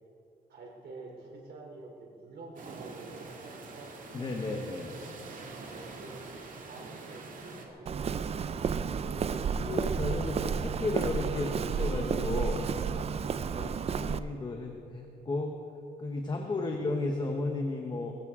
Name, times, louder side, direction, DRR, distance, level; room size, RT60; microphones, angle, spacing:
voice 1, 0.5-4.0 5.6-9.8 13.5-13.9, right 3 dB, 85° right, -1 dB, 3.3 m, -49 dB
sound 1, 2.6-7.7, right 3 dB, 55° right, 1.9 m, -45 dB
voice 2, 4.1-5.0 9.6-12.7 13.5-13.7 14.0-15.5 16.0-18.2, left 2 dB, 25° left, 2 dB, 1.0 m, -33 dB
Walk footsteps, 7.9-14.2, right 6 dB, 40° right, 0.4 m, -31 dB
22.0 x 15.0 x 3.7 m, 2.5 s
wide cardioid pair, 175°, 16 cm